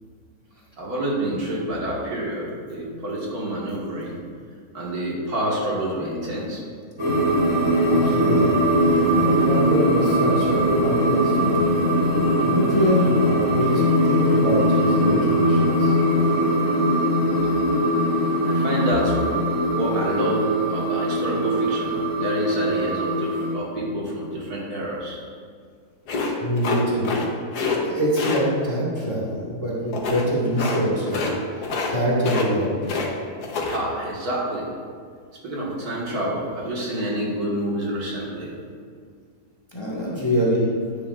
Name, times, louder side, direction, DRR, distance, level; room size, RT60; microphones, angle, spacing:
voice 1, 0.8-4.2 4.7-6.6 18.5-20.4 20.7-25.2 33.6-34.7 35.4-38.5, right 1 dB, 70° right, -4 dB, 2.2 m, -28 dB
sound 1, 7.0-23.6, equal, 15° right, 2.0 m, -21 dB
voice 2, 7.8-8.6 9.2-11.7 12.4-15.9 26.4-27.1 27.8-31.3 31.9-32.9 39.7-40.6, equal, 15° left, -6 dB, 1.7 m, -24 dB
sound 2, 26.1-27.3 27.5-27.8 28.2-28.4 29.9-30.3 30.6-30.8 31.1-31.4 31.6-31.9 32.2-33.1 33.4-33.8, left 4 dB, 80° left, 1.5 m, -26 dB
10.0 x 9.7 x 2.5 m, 2.1 s
omnidirectional pair, 1.7 m